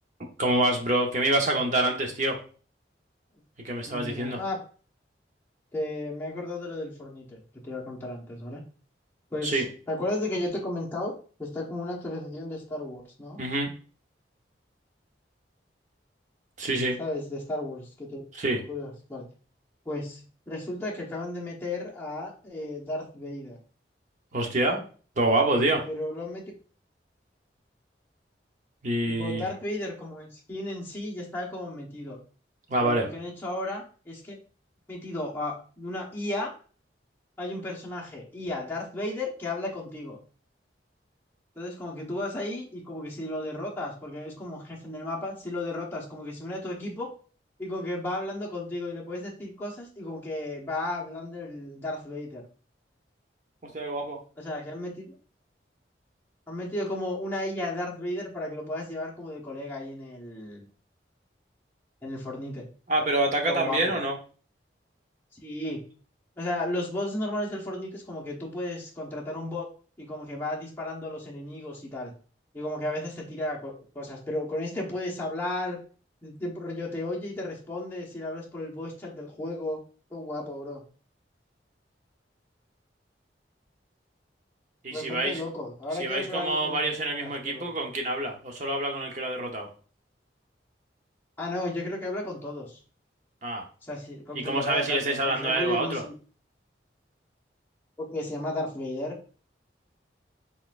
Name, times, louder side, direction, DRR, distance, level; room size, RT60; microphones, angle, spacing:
voice 1, 0.4-2.4 3.6-4.4 9.4-9.6 13.4-13.7 16.6-17.0 18.3-18.6 24.3-24.8 25.2-25.8 28.8-29.4 32.7-33.1 53.7-54.2 62.9-64.2 84.8-85.4 86.0-89.7 93.4-93.6 94.3-96.0, right 2 dB, 40° right, 2 dB, 0.8 m, -26 dB
voice 2, 3.9-4.6 5.7-8.6 9.3-13.4 17.0-18.2 18.7-19.3 19.8-23.6 25.9-26.4 29.1-32.2 32.8-34.4 34.9-36.5 37.4-40.2 41.6-47.1 47.6-52.4 54.4-55.1 56.5-60.6 62.0-62.7 63.5-64.0 65.4-65.9 66.4-69.7 70.0-72.1 72.5-75.8 76.2-79.8 80.1-80.8 84.9-87.7 91.4-92.8 93.8-96.1 98.0-99.2, left 1 dB, 15° left, -4 dB, 1.1 m, -34 dB
4.1 x 3.7 x 2.5 m, 0.39 s
head